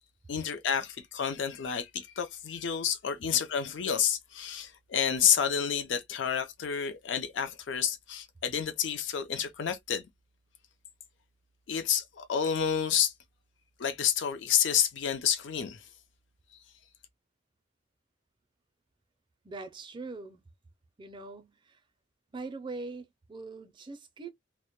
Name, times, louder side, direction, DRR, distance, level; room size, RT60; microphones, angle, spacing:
voice 1, 0.3-10.0 11.7-13.1 13.8-15.8, left 8 dB, 75° left, 0.5 m, -29 dB
voice 2, 19.4-20.4 21.0-21.8 22.3-24.3, right 3 dB, 25° right, 0.4 m, -42 dB
2.1 x 2.1 x 2.8 m
head